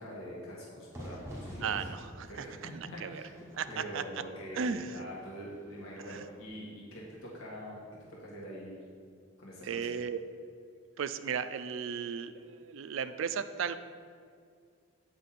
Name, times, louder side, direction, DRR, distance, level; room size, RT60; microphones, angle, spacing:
voice 1, 0.0-1.7 2.3-3.3 3.7-7.8 8.1-8.8 9.4-9.9, equal, 80° left, -5 dB, 1.7 m, -44 dB
Fire / Fireworks, 0.9-6.5, equal, 15° right, 1.1 m, -48 dB
voice 2, 1.6-3.2 3.6-4.0 4.5-5.0 6.1-6.2 9.6-10.2 11.0-13.9, right 6 dB, 70° right, 12 dB, 0.4 m, -35 dB
8.1 x 5.9 x 4.2 m, 2.2 s
head